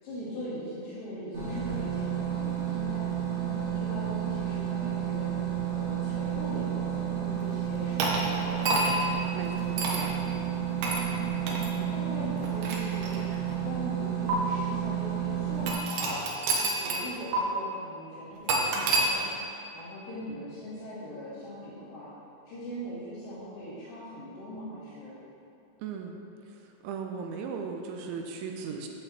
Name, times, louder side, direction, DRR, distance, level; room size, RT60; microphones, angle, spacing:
voice 1, 0.0-3.0 3.4-5.3 5.8-9.2 10.2-10.5 11.5-13.2 13.6-15.8 16.6-19.3 19.7-22.1 22.5-25.1, equal, 55° left, -14 dB, 3.8 m, -41 dB
sound 1, 1.3-15.7, right 9 dB, 30° right, 2.1 m, -31 dB
sound 2, 8.0-9.1 9.8-10.1 10.8-11.1 11.5-11.7 12.4-13.5 14.3-14.4 15.7-17.1 17.3-17.4 18.5-19.1, right 2 dB, 70° right, 2.6 m, -28 dB
voice 2, 9.3-10.2 25.8-26.2 26.8-28.9, right 5 dB, 85° right, 3 dB, 3.1 m, -37 dB
14.0 x 8.7 x 3.1 m, 2.8 s
omnidirectional pair, 5.4 m